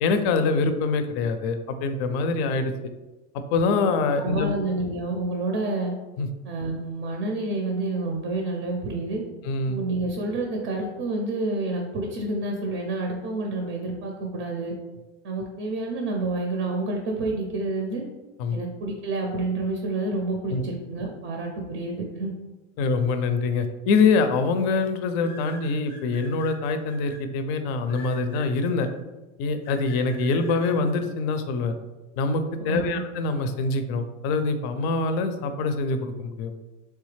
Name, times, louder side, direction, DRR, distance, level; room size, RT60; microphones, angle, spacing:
voice 1, 0.0-2.7 3.5-4.5 6.2-6.3 9.4-9.8 18.4-18.6 20.5-20.6 22.8-28.9 29.4-31.7 32.2-36.5, left 4 dB, 55° left, 9 dB, 0.5 m, -24 dB
voice 2, 4.2-5.9 6.4-9.2 9.7-14.7 15.2-18.0 18.5-22.3 32.6-33.0, right 2 dB, 35° right, 1 dB, 0.5 m, -29 dB
sound 1, 23.7-24.0 25.2-27.2 27.9-28.9 29.6-30.7, left 3 dB, 15° left, 0.7 m, -45 dB
3.4 x 3.1 x 3.2 m, 1.1 s
supercardioid pair, 130°, 37 cm